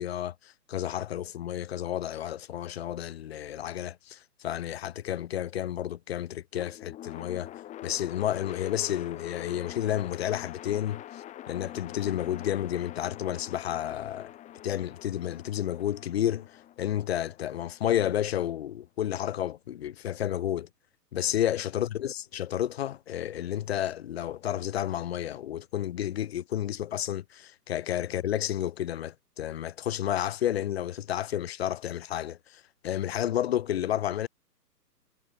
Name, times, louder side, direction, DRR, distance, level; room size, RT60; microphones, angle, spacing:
voice 1, 0.0-7.5 7.8-14.3 14.6-16.5 16.8-20.7 21.1-34.3, left 11 dB, 40° left, 3.4 m, -31 dB
sound 1, 6.5-18.6, left 13 dB, 15° left, 4.4 m, -44 dB
figure-of-eight pair, 130°, 48 cm